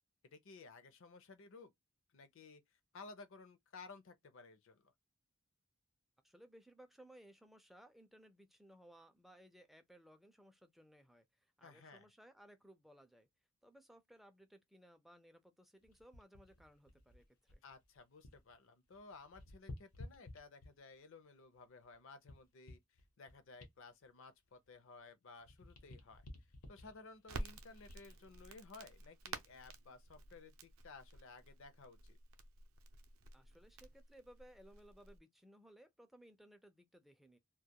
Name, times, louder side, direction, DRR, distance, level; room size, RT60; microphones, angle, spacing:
voice 1, 0.2-1.7 2.1-2.6 2.9-4.9 11.6-12.1 17.6-26.2 26.7-32.2, left 4 dB, 60° left, 0.5 m, -57 dB
voice 2, 6.2-13.3 13.6-17.6 33.3-37.4, right 1 dB, ahead, 0.3 m, -62 dB
sound 1, 15.8-18.6 18.8-21.0 21.5-25.1 25.4-28.2 28.7-28.9, left 2 dB, 80° left, 0.9 m, -56 dB
Crackle, 27.2-35.2, right 2 dB, 70° right, 0.5 m, -51 dB
2.3 x 2.1 x 2.7 m
head